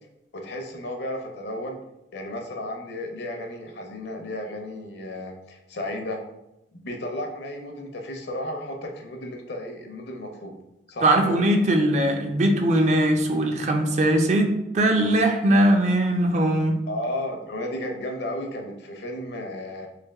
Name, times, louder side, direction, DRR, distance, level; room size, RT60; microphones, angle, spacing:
voice 1, 0.3-1.8 2.1-6.2 6.7-10.5 10.9-11.4 16.9-19.9, left 1 dB, 70° left, 3 dB, 0.6 m, -33 dB
voice 2, 11.0-14.5 14.7-16.8, right 1 dB, 40° right, 4 dB, 0.4 m, -20 dB
3.3 x 2.6 x 3.4 m, 0.89 s
head